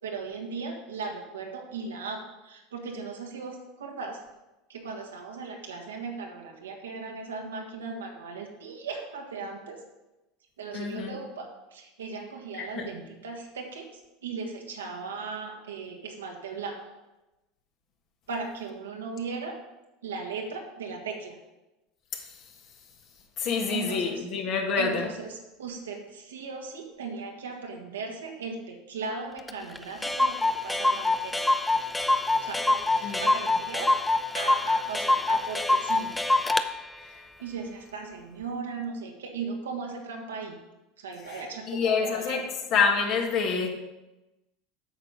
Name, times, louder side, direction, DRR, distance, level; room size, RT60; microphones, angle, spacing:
voice 1, 0.0-4.2 4.7-9.8 10.6-13.9 14.2-16.8 18.3-19.6 20.0-21.4 23.7-24.2 24.8-31.4 32.4-34.0 34.3-36.1 37.4-40.6 41.0-42.5, right 4 dB, 80° right, 2 dB, 1.6 m, -37 dB
voice 2, 10.7-11.2 12.6-12.9 22.1-22.4 23.4-25.1 33.0-33.2 37.0-37.2 41.3-41.4 41.7-42.4 42.7-43.7, left 5 dB, 50° left, 2 dB, 1.9 m, -27 dB
Clock, 29.5-29.6 29.8-29.9 30.0-36.7, left 2 dB, 10° left, 0.6 m, -25 dB
8.8 x 6.5 x 5.2 m, 1.0 s
hypercardioid pair, 80°, 0 cm